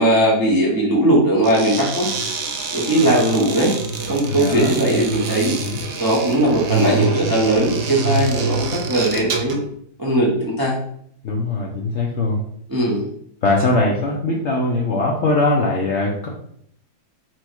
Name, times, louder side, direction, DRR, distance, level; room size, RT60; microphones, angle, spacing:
voice 1, 0.0-2.1 2.7-3.7 4.1-5.5 6.0-9.6 10.0-10.8 12.7-13.1, right 1 dB, 30° right, -4 dB, 0.4 m, -18 dB
sound 1, 1.4-9.7, right 4 dB, 65° right, 0.7 m, -26 dB
voice 2, 4.3-4.8 5.4-5.8 11.2-12.4 13.4-16.3, left 2 dB, 65° left, -1 dB, 0.7 m, -21 dB
4.5 x 2.2 x 4.4 m, 0.68 s
omnidirectional pair, 1.8 m